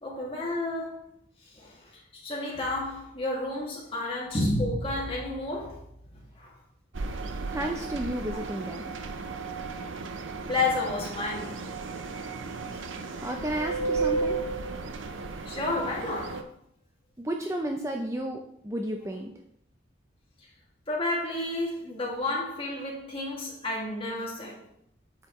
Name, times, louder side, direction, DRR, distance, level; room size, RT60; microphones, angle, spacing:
voice 1, 0.0-1.0 1.5-1.7 2.1-5.9 6.4-6.5 10.5-11.6 15.5-16.5 20.9-24.6, left 2 dB, 30° left, 2.2 m, -31 dB
sound 1, 6.9-16.4, right 3 dB, 80° right, 0.7 m, -34 dB
voice 2, 7.5-8.8 12.9-14.4 17.2-19.3, right 1 dB, 15° right, 0.5 m, -32 dB
8.5 x 6.4 x 3.1 m
head